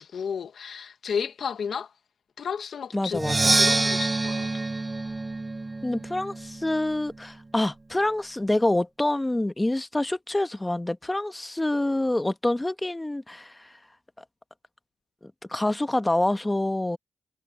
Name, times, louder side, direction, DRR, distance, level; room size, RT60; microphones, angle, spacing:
voice 1, 0.0-1.9 2.4-3.2 3.4-4.5, left 7 dB, 70° left, 1.1 m, -32 dB
voice 2, 2.9-3.5 5.8-13.7 15.2-17.0, left 1 dB, 15° left, 1.2 m, -26 dB
Percussion, 3.1-6.9, right 2 dB, 30° right, 0.6 m, -26 dB
supercardioid pair, 55°, 0 cm